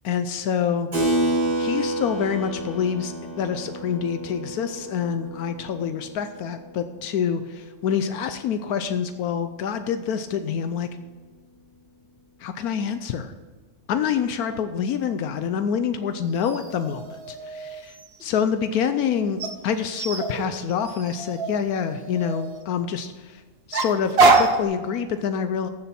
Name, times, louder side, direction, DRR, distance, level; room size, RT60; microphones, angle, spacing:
voice 1, 0.0-0.9 1.6-10.9 12.4-13.3 13.9-17.9 18.2-23.4 23.7-25.7, left 7 dB, 80° left, 9 dB, 1.2 m, -26 dB
Keyboard (musical), 0.9-6.9, right 1 dB, 85° right, 4.8 m, -29 dB
sound 1, 16.4-18.4 19.4-22.6 23.7-24.6, right 3 dB, 45° right, 1.1 m, -24 dB
14.5 x 7.0 x 4.4 m, 1.4 s
omnidirectional pair, 1.6 m